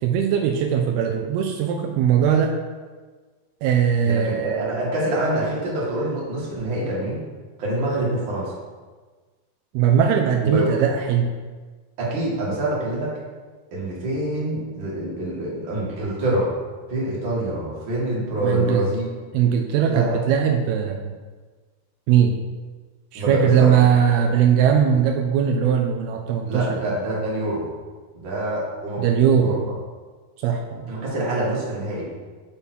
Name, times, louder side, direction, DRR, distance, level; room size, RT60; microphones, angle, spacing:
voice 1, 0.0-2.6 3.6-4.8 9.7-11.3 18.4-18.9 19.3-21.1 22.1-22.4 23.1-26.9 29.0-29.7 30.4-30.8, right 8 dB, 85° right, 3 dB, 2.5 m, -20 dB
voice 2, 4.0-7.2 7.6-8.5 10.4-10.7 12.0-13.1 13.7-16.5 16.9-19.0 19.9-20.2 23.1-23.9 24.1-24.2 26.5-27.7 28.2-29.1 29.4-29.5 30.9-32.1, right 1 dB, 40° right, -6 dB, 2.1 m, -26 dB
7.0 x 5.2 x 4.5 m, 1.4 s
omnidirectional pair, 4.5 m